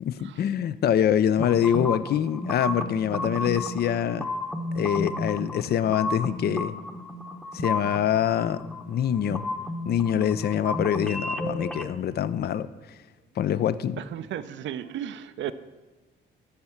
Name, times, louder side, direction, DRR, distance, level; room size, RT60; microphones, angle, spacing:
voice 1, 0.0-4.3 4.7-6.7 7.5-9.4 9.8-12.7 13.4-14.0, left 9 dB, 55° left, 15 dB, 0.5 m, -25 dB
sound 1, 1.4-11.9, left 2 dB, 5° left, 0.8 m, -33 dB
voice 2, 14.0-15.5, right 10 dB, 70° right, 12 dB, 0.5 m, -34 dB
12.5 x 4.4 x 7.1 m, 1.2 s
cardioid pair, 90°, 20 cm